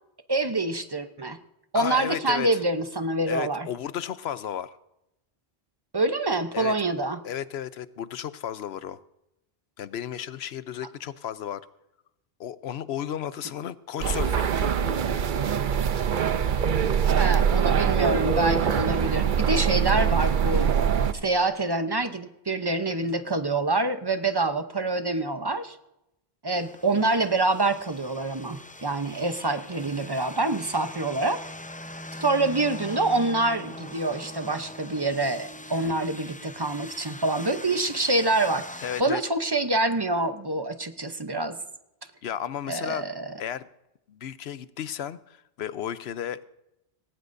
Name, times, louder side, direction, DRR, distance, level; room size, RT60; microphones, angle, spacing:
voice 1, 0.3-1.4 1.7-3.7 5.9-7.2 17.1-20.7 21.2-25.8 26.4-31.4 32.2-41.6 42.7-43.3, right 2 dB, 25° right, 9 dB, 0.7 m, -26 dB
voice 2, 1.7-2.6 3.3-4.8 6.5-6.7 7.2-9.0 9.8-11.6 12.4-14.8 38.8-39.2 42.2-43.0 43.4-43.7 44.1-46.4, left 9 dB, 80° left, 15 dB, 0.9 m, -33 dB
sound 1, 14.0-21.1, right 7 dB, 55° right, 0.8 m, -23 dB
sound 2, 26.6-39.0, left 1 dB, 15° left, 0.3 m, -42 dB
18.0 x 18.0 x 2.6 m, 0.88 s
omnidirectional pair, 1.1 m